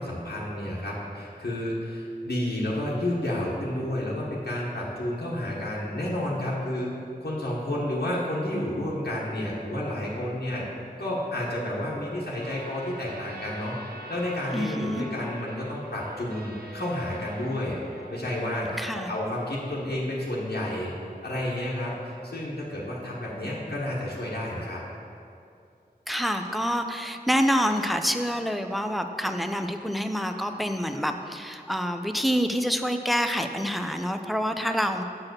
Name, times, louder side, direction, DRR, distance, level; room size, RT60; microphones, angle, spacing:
voice 1, 0.0-6.9 7.2-10.6 11.0-13.8 14.1-17.8 18.1-20.9 21.2-24.8, left 1 dB, 90° left, -6 dB, 1.2 m, -30 dB
sound 1, 12.4-18.2, right 1 dB, 70° right, 0.8 m, -43 dB
voice 2, 14.5-15.1 18.8-19.1 26.1-35.0, equal, ahead, 6 dB, 0.5 m, -27 dB
7.3 x 4.7 x 6.3 m, 2.5 s
wide cardioid pair, 45°, 17 cm